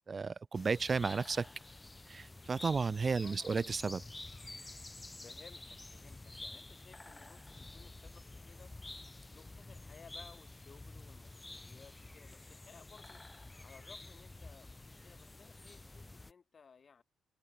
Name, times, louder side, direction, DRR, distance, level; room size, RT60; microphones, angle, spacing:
voice 1, 0.1-1.5 2.1-4.0, right 4 dB, 35° right, 0.4 m, -33 dB
sound 1, 0.5-16.3, left 2 dB, 15° left, 2.9 m, -50 dB
voice 2, 3.2-3.6 5.2-8.7 9.3-13.2 13.6-17.0, left 6 dB, 40° left, 4.0 m, -59 dB
open air
cardioid pair, 90°, 0 cm